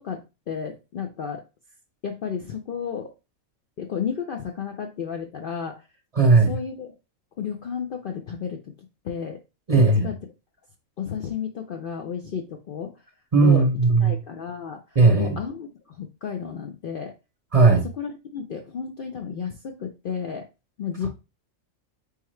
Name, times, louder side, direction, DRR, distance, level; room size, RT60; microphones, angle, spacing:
voice 1, 0.0-1.4 2.0-3.1 3.8-5.9 6.5-6.9 7.4-8.7 9.0-9.4 9.7-10.2 11.0-13.0 13.4-13.7 14.0-17.1 17.6-20.5 20.8-21.1, left 7 dB, 60° left, 0.5 m, -32 dB
voice 2, 6.2-6.6 9.7-10.1 13.3-14.2 15.0-15.4 17.5-17.8, right 3 dB, 35° right, 0.7 m, -17 dB
4.4 x 3.7 x 3.1 m
omnidirectional pair, 1.4 m